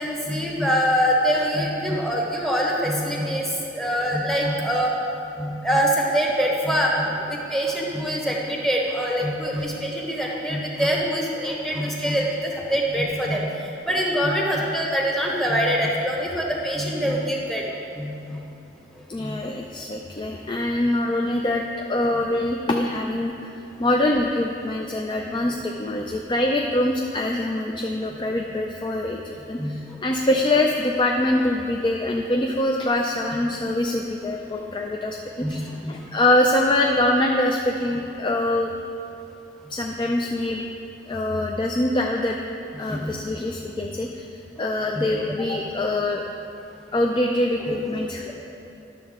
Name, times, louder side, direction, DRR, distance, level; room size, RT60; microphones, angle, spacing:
voice 1, 0.0-4.9 5.4-7.2 7.5-18.4 19.0-19.4 23.7-23.8 29.6-30.0 35.4-36.1 42.9-43.1 44.9-45.1 47.7-48.0, equal, ahead, -2 dB, 1.1 m, -24 dB
voice 2, 19.1-23.5 23.8-38.7 39.7-40.6 41.1-42.4 42.8-44.3 44.6-46.2 46.9-48.3, left 1 dB, 25° left, 1 dB, 0.4 m, -24 dB
11.0 x 7.0 x 3.7 m, 2.8 s
head